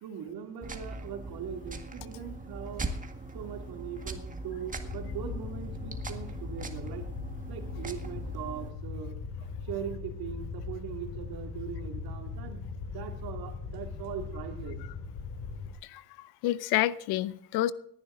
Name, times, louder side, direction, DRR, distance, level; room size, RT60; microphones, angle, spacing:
voice 1, 0.0-2.9 3.3-7.1 7.5-9.1 9.6-14.8, right 8 dB, 65° right, 2.5 m, -40 dB
sound 1, 0.6-8.7, right 2 dB, 20° right, 1.8 m, -40 dB
Fire, 4.9-15.7, left 5 dB, 50° left, 3.1 m, -39 dB
voice 2, 15.8-17.7, left 14 dB, 70° left, 0.7 m, -29 dB
18.5 x 11.0 x 3.8 m
supercardioid pair, 85°, 40 cm